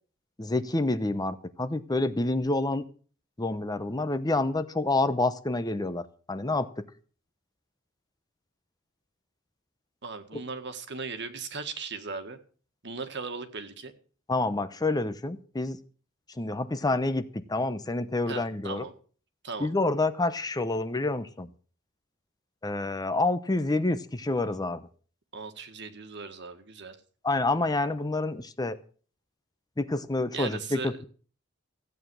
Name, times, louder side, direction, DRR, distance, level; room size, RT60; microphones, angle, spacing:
voice 1, 0.4-2.8 3.4-6.7 14.3-15.8 16.4-18.8 19.6-21.5 22.6-24.9 27.2-28.8 29.8-31.0, left 2 dB, 20° left, 11 dB, 0.7 m, -28 dB
voice 2, 10.0-12.4 12.8-13.9 18.3-18.9 19.4-19.7 25.3-27.0 30.3-31.1, right 4 dB, 55° right, 8 dB, 1.7 m, -38 dB
15.5 x 9.1 x 6.3 m, 0.41 s
head